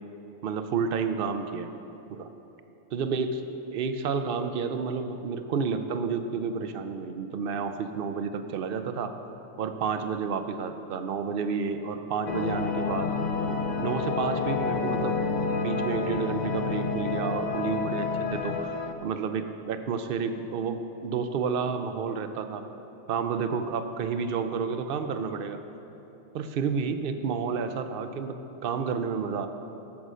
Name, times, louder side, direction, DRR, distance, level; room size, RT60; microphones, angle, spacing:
voice 1, 0.4-1.7 2.1-2.3 2.9-3.4 3.7-9.2 9.6-13.1 13.8-15.2 15.5-18.7 19.0-22.6 23.1-25.6 26.3-28.3 28.6-29.5, right 5 dB, 60° right, 8 dB, 0.7 m, -30 dB
sound 1, 12.3-18.9, left 4 dB, 50° left, 0.6 m, -29 dB
13.5 x 5.4 x 6.2 m, 3.0 s
omnidirectional pair, 1.2 m